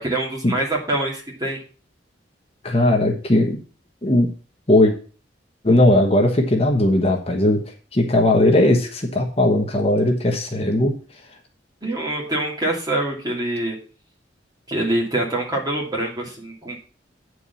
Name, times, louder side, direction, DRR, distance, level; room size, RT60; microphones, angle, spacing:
voice 1, 0.0-1.6 11.8-13.8 14.7-16.8, right 1 dB, 20° right, -2 dB, 2.8 m, -25 dB
voice 2, 2.6-3.6 4.0-4.3 4.7-4.9 5.6-10.9, left 1 dB, 35° left, 2 dB, 1.2 m, -18 dB
8.8 x 4.7 x 6.9 m, 0.39 s
head